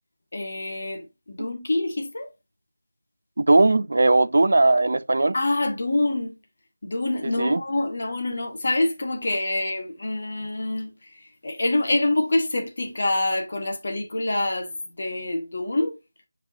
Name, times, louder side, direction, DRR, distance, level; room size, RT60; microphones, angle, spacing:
voice 1, 0.3-2.3 5.3-6.3 6.8-14.7 15.0-15.9, left 2 dB, 55° left, 1.7 m, -26 dB
voice 2, 3.4-5.3 7.4-7.6, right 2 dB, 60° right, 0.4 m, -18 dB
8.0 x 5.2 x 2.7 m
figure-of-eight pair, 165°, 0 cm